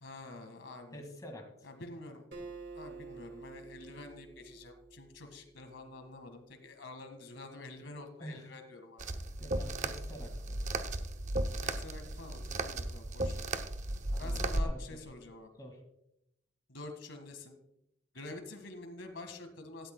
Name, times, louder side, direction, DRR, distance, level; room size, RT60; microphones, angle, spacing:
voice 1, 0.0-1.0 1.6-2.3 2.7-9.1 11.6-13.7 14.2-15.5 16.7-17.5 18.1-19.9, left 2 dB, 80° left, 6 dB, 1.7 m, -47 dB
voice 2, 0.9-1.7 8.2-8.5 9.4-10.6 14.1-15.0 15.6-15.8, equal, 20° left, 3 dB, 2.0 m, -47 dB
Acoustic guitar, 2.3-5.7, right 4 dB, 60° right, 2.0 m, -49 dB
sound 1, 9.0-14.6, right 2 dB, 35° right, 0.7 m, -35 dB
16.5 x 12.5 x 2.2 m, 0.82 s
head